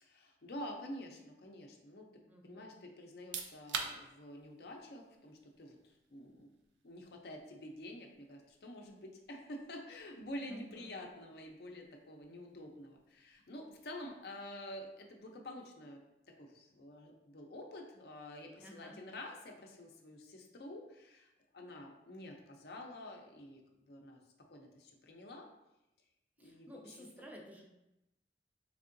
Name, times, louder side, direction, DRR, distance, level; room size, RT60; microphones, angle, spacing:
voice 1, 0.0-2.1 2.4-6.5 6.8-16.0 16.4-23.6 23.9-24.2 24.5-25.5 26.4-27.1, left 1 dB, 60° left, 2 dB, 0.5 m, -48 dB
voice 2, 2.3-2.7 10.5-10.9 18.6-19.0 26.4-27.6, equal, 10° right, 0 dB, 0.4 m, -53 dB
sound 1, 3.1-15.7, right 6 dB, 85° right, 0.4 m, -51 dB
3.6 x 3.4 x 2.5 m, 0.90 s
head